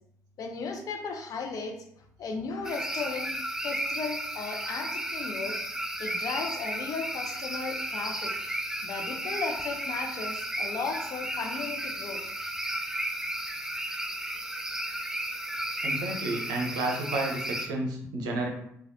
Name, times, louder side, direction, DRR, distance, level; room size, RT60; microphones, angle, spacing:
voice 1, 0.4-1.8 2.2-3.3 3.6-5.6 6.0-12.2, left 4 dB, 55° left, 3 dB, 0.6 m, -35 dB
sound 1, 2.6-17.7, right 1 dB, 5° right, 0.4 m, -34 dB
voice 2, 15.8-18.5, right 2 dB, 70° right, 2 dB, 0.6 m, -31 dB
3.2 x 2.3 x 2.6 m, 0.72 s
hypercardioid pair, 45°, 7 cm